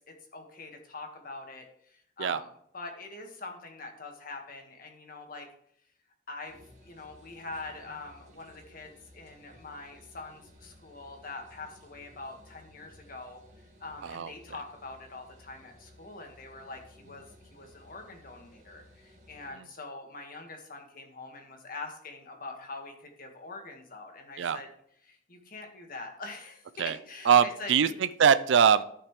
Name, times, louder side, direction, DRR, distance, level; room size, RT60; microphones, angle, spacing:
voice 1, 0.1-2.5 2.7-5.5 6.3-24.7 25.0-27.9, left 3 dB, 50° left, 3 dB, 1.7 m, -44 dB
sound 1, 6.5-19.5, left 1 dB, 40° right, 1.9 m, -57 dB
voice 2, 27.3-28.8, right 7 dB, 85° right, 14 dB, 0.4 m, -22 dB
13.5 x 5.8 x 3.2 m, 0.68 s
head